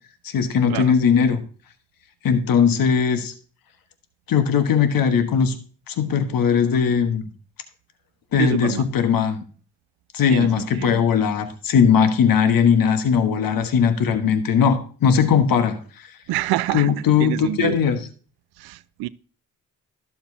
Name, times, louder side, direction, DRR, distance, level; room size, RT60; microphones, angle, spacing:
voice 1, 0.2-1.4 2.2-3.3 4.3-5.5 5.9-7.2 8.3-9.4 10.1-16.1 16.7-18.0, left 7 dB, 65° left, 1.4 m, -19 dB
voice 2, 8.4-8.9 10.3-11.1 16.3-16.9 17.2-17.8 18.6-19.1, right 17 dB, 80° right, 0.6 m, -27 dB
12.0 x 7.2 x 2.8 m
supercardioid pair, 55°, 37 cm